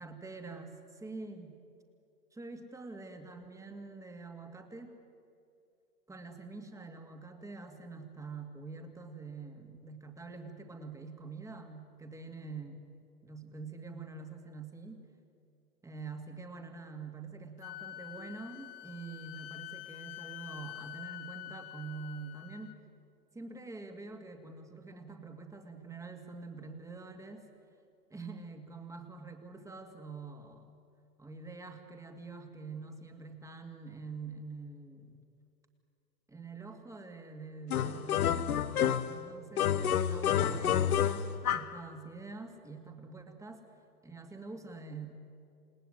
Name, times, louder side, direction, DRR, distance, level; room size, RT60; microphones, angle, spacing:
voice 1, 0.0-1.6 2.3-5.0 6.1-12.8 13.2-15.0 15.8-22.8 23.3-27.5 28.1-30.8 31.2-35.2 36.3-43.6 44.0-45.1, right 4 dB, 5° right, 5 dB, 2.4 m, -46 dB
Wind instrument woodwind instrument, 17.6-22.8, left 15 dB, 35° left, 1.1 m, -46 dB
sound 1, 37.7-39.2 39.6-41.8, left 9 dB, 65° left, 1.3 m, -29 dB
28.5 x 19.0 x 9.4 m, 2.5 s
hypercardioid pair, 120°, 48 cm